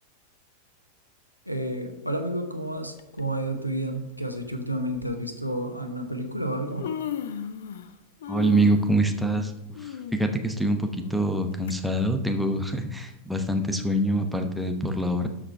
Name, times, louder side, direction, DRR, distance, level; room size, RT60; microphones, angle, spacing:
voice 1, 1.5-6.9, right 1 dB, 90° left, 6 dB, 0.9 m, -30 dB
Human voice, 3.0-3.2 4.2-4.3 4.9-5.1 6.1-6.2 6.5-7.9 8.2-11.7 12.1-12.2 13.1-13.2, left 8 dB, 60° left, 0.5 m, -36 dB
voice 2, 8.3-9.5 9.8-15.3, right 1 dB, ahead, 5 dB, 0.9 m, -25 dB
12.5 x 4.9 x 3.4 m, 0.96 s
figure-of-eight pair, 90°, 0 cm